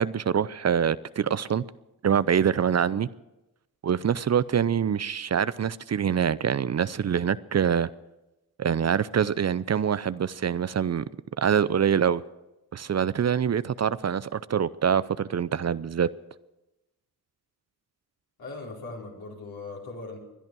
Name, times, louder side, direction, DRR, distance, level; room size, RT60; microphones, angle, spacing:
voice 1, 0.0-1.6 2.0-3.1 3.8-7.9 8.6-11.0 11.4-12.2 12.7-16.1, right 8 dB, 45° right, 17 dB, 0.6 m, -25 dB
voice 2, 18.4-20.2, left 3 dB, 70° left, -2 dB, 4.4 m, -39 dB
21.5 x 10.5 x 6.2 m, 0.99 s
cardioid pair, 50°, 37 cm